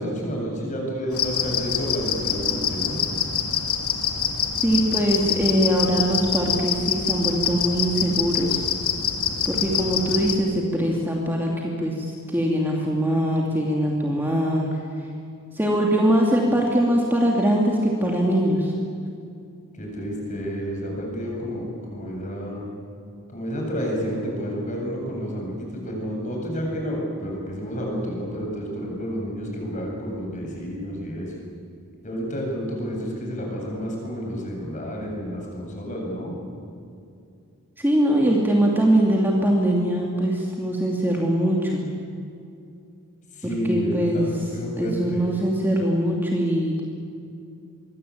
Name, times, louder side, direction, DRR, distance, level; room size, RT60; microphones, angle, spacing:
voice 1, 0.0-3.0 19.7-22.7 23.3-31.3 32.0-36.4 43.3-45.2, equal, 35° left, -1 dB, 8.0 m, -30 dB
sound 1, 1.1-10.3, left 8 dB, 85° left, 3.1 m, -26 dB
voice 2, 4.6-8.6 9.4-14.8 15.5-18.7 37.8-41.8 43.7-44.3 44.8-46.8, right 1 dB, 10° right, -1 dB, 2.8 m, -22 dB
27.0 x 23.5 x 8.8 m, 2.5 s
head